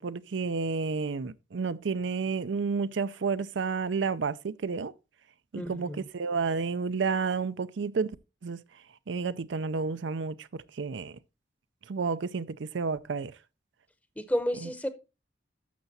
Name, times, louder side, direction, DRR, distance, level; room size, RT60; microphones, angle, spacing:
voice 1, 0.0-4.9 5.5-8.2 8.4-8.6 9.1-11.2 11.9-13.3, right 4 dB, 80° right, 0.5 m, -31 dB
voice 2, 5.5-6.1 14.2-14.9, equal, 10° left, 0.8 m, -31 dB
12.0 x 7.0 x 2.7 m
head